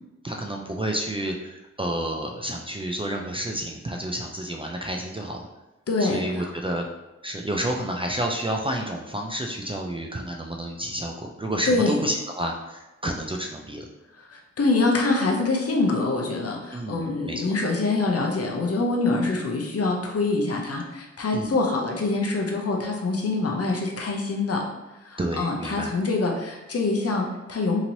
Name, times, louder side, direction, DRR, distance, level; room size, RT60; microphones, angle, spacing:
voice 1, 0.2-5.4 6.0-6.9 7.2-13.9 16.7-17.5 21.3-21.5 25.2-25.9, right 1 dB, 20° right, 0 dB, 0.3 m, -30 dB
voice 2, 5.9-6.5 11.7-11.9 14.2-24.6 25.0-27.8, left 3 dB, 55° left, 1 dB, 0.6 m, -25 dB
2.9 x 2.8 x 2.6 m, 1.0 s
cardioid pair, 65°, 29 cm